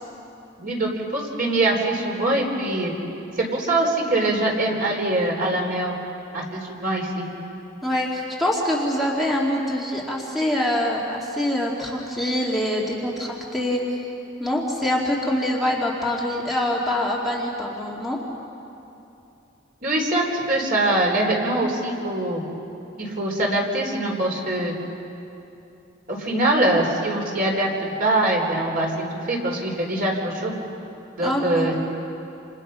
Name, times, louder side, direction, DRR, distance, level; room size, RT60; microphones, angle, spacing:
voice 1, 0.6-2.9 3.4-5.9 6.3-7.2 19.8-22.4 23.0-24.7 26.1-30.5 31.2-31.7, right 1 dB, 50° right, 0 dB, 4.2 m, -23 dB
voice 2, 7.8-13.8 14.4-18.2 21.6-21.7 31.2-31.7, left 1 dB, ahead, -4 dB, 2.5 m, -24 dB
28.5 x 28.0 x 5.7 m, 2.9 s
head